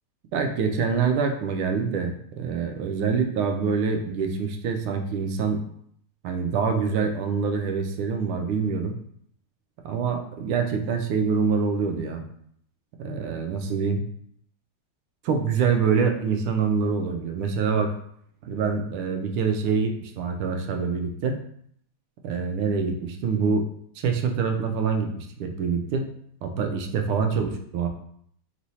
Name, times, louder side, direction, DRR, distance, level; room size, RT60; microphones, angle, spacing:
voice 1, 0.3-5.6 6.2-8.9 9.8-12.2 13.0-14.0 15.2-17.9 18.5-21.4 22.2-23.6 24.0-26.0 26.4-27.9, right 5 dB, 85° right, 5 dB, 1.5 m, -25 dB
3.6 x 3.1 x 4.0 m, 0.66 s
omnidirectional pair, 2.3 m